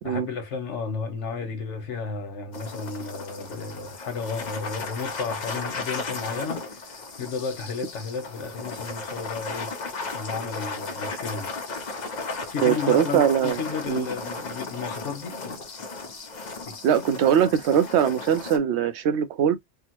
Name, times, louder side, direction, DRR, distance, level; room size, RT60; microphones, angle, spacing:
voice 1, 0.0-9.7 10.1-11.5 12.5-15.6 16.7-16.8, left 5 dB, 85° left, 1.2 m, -33 dB
sound 1, 2.5-18.6, left 3 dB, 45° left, 0.7 m, -35 dB
voice 2, 12.6-13.6 13.9-14.1 16.8-19.6, right 8 dB, 75° right, 0.8 m, -21 dB
3.4 x 2.1 x 2.9 m
omnidirectional pair, 1.2 m